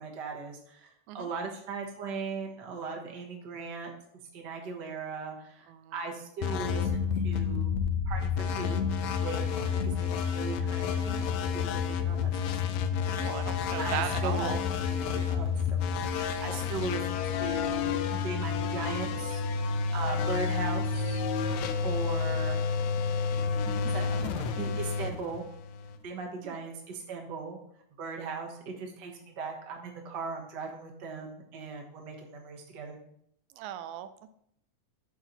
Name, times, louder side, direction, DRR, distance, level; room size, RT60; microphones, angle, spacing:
voice 1, 0.0-3.9 4.3-7.7 8.0-8.8 9.2-12.7 13.8-19.4 19.7-21.2 21.8-22.7 23.7-25.4 26.0-27.6 28.0-33.0, right 4 dB, 45° right, 1 dB, 1.6 m, -39 dB
sound 1, 6.4-26.0, left 6 dB, 80° left, 2.0 m, -30 dB
voice 2, 13.1-14.6 26.4-26.6 33.6-34.3, right 11 dB, 90° right, 11 dB, 2.0 m, -37 dB
8.8 x 6.0 x 4.0 m, 0.72 s
omnidirectional pair, 3.3 m